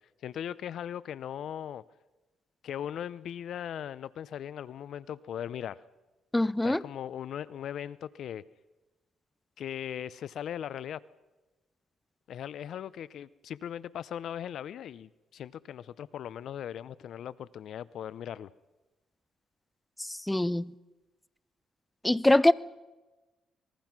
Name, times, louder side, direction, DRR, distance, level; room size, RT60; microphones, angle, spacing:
voice 1, 0.2-1.8 2.6-5.8 6.6-8.4 9.6-11.0 12.3-18.5, left 9 dB, 70° left, 0.6 m, -39 dB
voice 2, 6.3-6.8 20.1-20.7 22.0-22.5, left 1 dB, 10° left, 0.7 m, -23 dB
25.5 x 21.0 x 6.0 m
cardioid pair, 90°, 0 cm